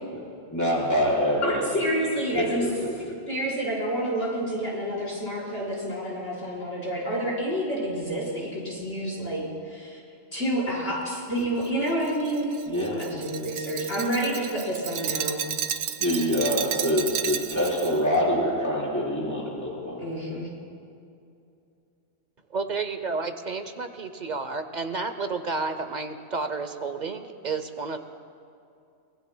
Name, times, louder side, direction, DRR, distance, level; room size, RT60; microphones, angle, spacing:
voice 1, 0.5-1.6 1.9-2.0 2.3-3.2 12.7-13.0 16.0-20.0, equal, 15° left, -5 dB, 4.1 m, -25 dB
voice 2, 1.4-2.6 3.3-10.0 10.3-12.6 12.9-15.5 20.0-20.5, right 1 dB, 80° left, -6 dB, 4.9 m, -29 dB
Glass, 11.6-18.0, right 9 dB, 80° right, 1.0 m, -32 dB
voice 3, 22.5-28.0, right 4 dB, 45° right, 8 dB, 0.8 m, -31 dB
25.0 x 20.0 x 2.2 m, 2.6 s
omnidirectional pair, 1.2 m